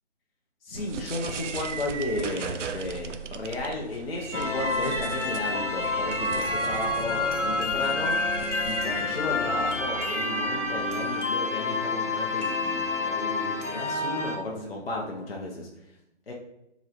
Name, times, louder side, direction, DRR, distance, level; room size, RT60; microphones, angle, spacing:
voice 1, 0.6-8.2 8.6-15.7 16.3-16.4, left 2 dB, 55° left, -2 dB, 0.6 m, -34 dB
sound 1, 0.7-11.4, right 6 dB, 80° right, 0.5 m, -37 dB
sound 2, 4.3-14.4, left 3 dB, 85° left, 0.8 m, -28 dB
3.0 x 2.5 x 4.3 m, 0.85 s
figure-of-eight pair, 175°, 36 cm